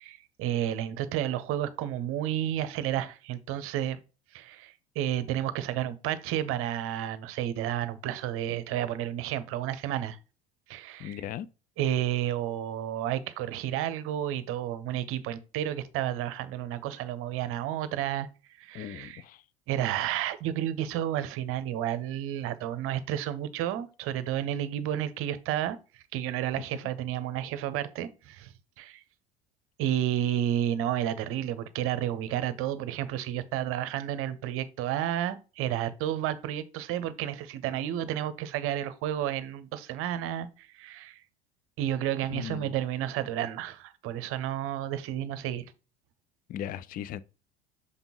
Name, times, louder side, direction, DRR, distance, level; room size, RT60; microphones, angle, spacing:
voice 1, 0.0-4.0 4.3-10.2 10.7-11.2 11.8-18.3 18.6-19.2 19.7-28.5 28.8-29.0 29.8-41.2 41.8-45.6, right 11 dB, 45° right, 0.8 m, -31 dB
voice 2, 11.0-11.5 18.7-19.4 42.3-42.8 46.5-47.2, left 10 dB, 30° left, 0.4 m, -37 dB
6.6 x 5.2 x 2.9 m
figure-of-eight pair, 65°, 32 cm